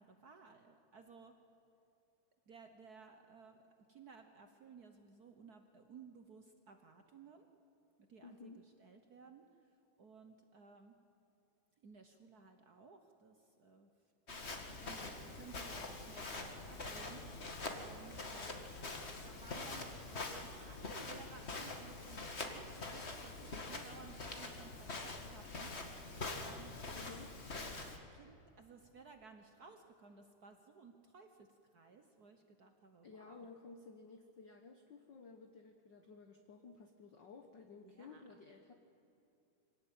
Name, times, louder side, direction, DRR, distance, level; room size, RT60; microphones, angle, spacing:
voice 1, 0.0-1.4 2.5-3.6 3.9-7.5 8.1-11.0 11.8-13.9 14.6-17.5 17.8-18.8 19.2-25.7 26.4-27.2 27.6-33.5 37.8-38.2, right 5 dB, 70° right, 6 dB, 0.9 m, -58 dB
voice 2, 8.2-8.6 26.9-27.3 33.0-38.7, left 4 dB, 55° left, 5 dB, 1.4 m, -55 dB
Walk footsteps, 14.3-28.0, left 3 dB, 25° left, 1.5 m, -45 dB
25.0 x 17.5 x 8.9 m, 2.8 s
omnidirectional pair, 3.4 m